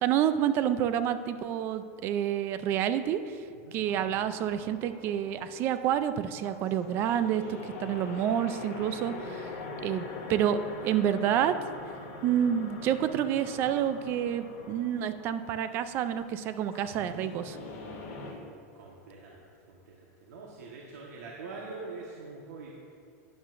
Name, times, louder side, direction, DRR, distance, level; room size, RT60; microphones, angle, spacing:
voice 1, 0.0-3.4 3.7-9.5 9.8-11.5 12.2-17.6, right 10 dB, 25° right, 11 dB, 0.3 m, -28 dB
sound 1, 3.8-18.3, left 3 dB, 60° left, 2.6 m, -43 dB
voice 2, 18.7-22.7, right 3 dB, 85° right, -3 dB, 1.3 m, -44 dB
11.5 x 10.0 x 2.5 m, 2.3 s
supercardioid pair, 170°, 9 cm